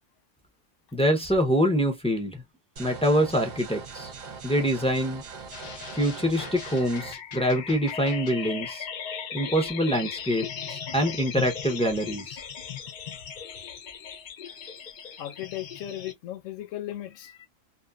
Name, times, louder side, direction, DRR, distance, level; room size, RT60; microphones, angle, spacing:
voice 1, 0.9-2.4 2.8-4.1 4.4-5.2 5.9-8.9 9.3-12.4, equal, 10° left, 0.4 m, -25 dB
sound 1, 2.8-7.1, right 5 dB, 50° right, 0.6 m, -41 dB
sound 2, 5.5-16.1, left 7 dB, 55° left, 0.6 m, -38 dB
voice 2, 15.2-17.5, left 13 dB, 80° left, 1.0 m, -36 dB
2.6 x 2.2 x 2.3 m
omnidirectional pair, 1.3 m